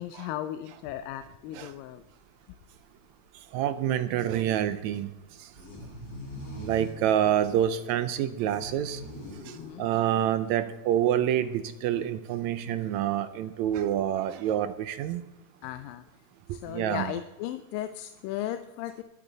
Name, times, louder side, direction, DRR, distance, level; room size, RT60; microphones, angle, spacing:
voice 1, 0.0-2.0 9.5-9.9 15.6-16.0 16.5-19.0, left 12 dB, 90° left, 2.4 m, -36 dB
sound 1, 1.1-1.2 1.4-1.5 1.9-2.0 2.4-2.5 3.0-3.1 3.2-3.6 4.3-4.4 4.9-5.0 5.3-10.5, left 1 dB, 40° left, 5.1 m, -44 dB
voice 2, 3.5-5.1 6.6-9.0 9.8-15.2 16.7-17.1, right 10 dB, 80° right, 1.6 m, -27 dB
23.0 x 8.5 x 4.0 m
omnidirectional pair, 3.9 m